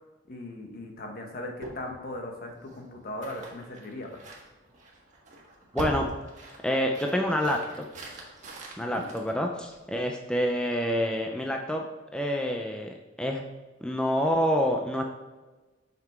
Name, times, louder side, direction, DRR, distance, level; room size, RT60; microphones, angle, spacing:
voice 1, 0.3-4.2 8.8-9.1, left 1 dB, 55° left, 2 dB, 1.3 m, -38 dB
sound 1, 1.6-10.0, right 1 dB, 40° right, 1.5 m, -43 dB
voice 2, 5.7-6.1 6.6-7.6 8.8-11.8 12.1-13.5 13.8-15.0, equal, 5° left, 2 dB, 0.5 m, -27 dB
7.5 x 5.9 x 3.6 m, 1.2 s
head